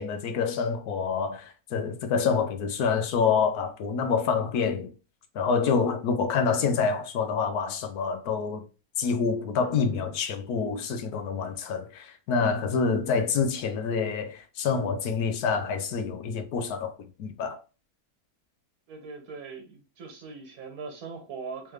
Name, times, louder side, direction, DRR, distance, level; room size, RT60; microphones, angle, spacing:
voice 1, 0.0-4.9 5.3-8.7 9.0-16.9 17.2-17.6, left 5 dB, 90° left, 1.3 m, -27 dB
voice 2, 18.9-21.7, right 4 dB, 70° right, 1.5 m, -40 dB
3.5 x 3.2 x 3.2 m
omnidirectional pair, 1.6 m